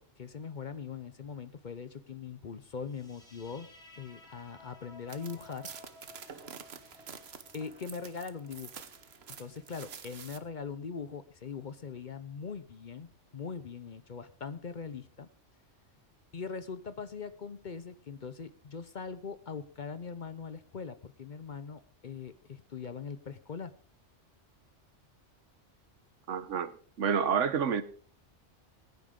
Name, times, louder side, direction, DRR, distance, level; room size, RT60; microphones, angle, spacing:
voice 1, 0.0-3.7 4.0-5.7 6.8-7.0 7.5-8.8 9.4-13.1 13.3-15.3 16.3-23.7, left 5 dB, 45° left, 13 dB, 0.8 m, -41 dB
sound 1, 2.8-9.8, left 2 dB, 65° left, 5.2 m, -57 dB
sound 2, 5.1-10.4, right 6 dB, 60° right, 1.2 m, -48 dB
voice 2, 26.3-26.7 27.0-27.8, right 7 dB, 80° right, 14 dB, 1.3 m, -28 dB
21.0 x 9.4 x 3.7 m, 0.42 s
omnidirectional pair, 1.2 m